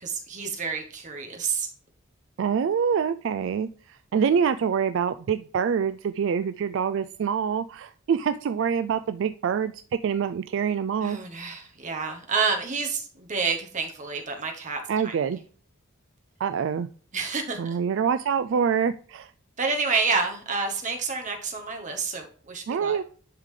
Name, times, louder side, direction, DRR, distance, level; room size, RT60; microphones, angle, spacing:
voice 1, 0.0-1.7 11.0-15.2 17.1-17.8 19.6-23.0, right 4 dB, 35° right, 3 dB, 1.0 m, -29 dB
voice 2, 2.4-9.7 10.0-11.2 14.9-15.4 16.4-16.9 17.6-19.3 22.7-23.0, right 7 dB, 60° right, 11 dB, 0.3 m, -25 dB
10.5 x 3.8 x 3.2 m, 0.43 s
head